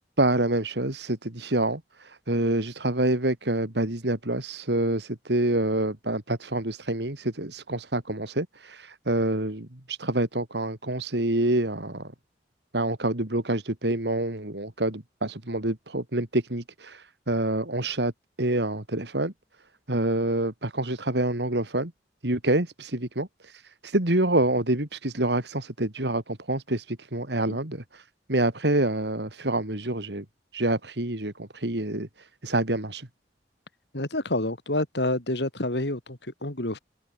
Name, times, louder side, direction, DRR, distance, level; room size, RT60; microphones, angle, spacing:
voice 1, 0.0-1.8 2.3-12.1 12.7-18.1 18.4-19.3 19.9-21.9 22.2-28.0 28.3-30.2 30.5-32.1 32.4-33.1, right 1 dB, 75° right, 3.0 m, -27 dB
voice 2, 33.9-36.8, left 1 dB, 75° left, 3.5 m, -28 dB
head